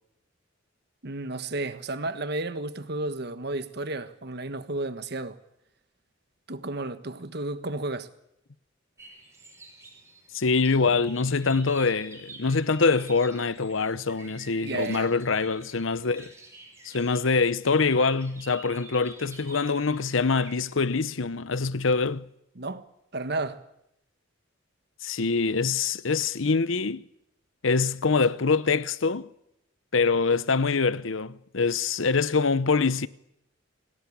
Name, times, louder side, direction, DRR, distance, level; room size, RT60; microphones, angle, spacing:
voice 1, 1.0-5.4 6.5-8.1 14.6-15.1 22.5-22.9 23.1-23.6, right 2 dB, 55° right, 1.4 m, -32 dB
sound 1, 9.0-20.6, right 2 dB, 15° right, 5.8 m, -49 dB
voice 2, 10.3-16.3 16.8-22.3 25.0-27.0 27.6-29.3 29.9-33.1, left 4 dB, 80° left, 0.9 m, -24 dB
28.5 x 18.5 x 8.6 m
head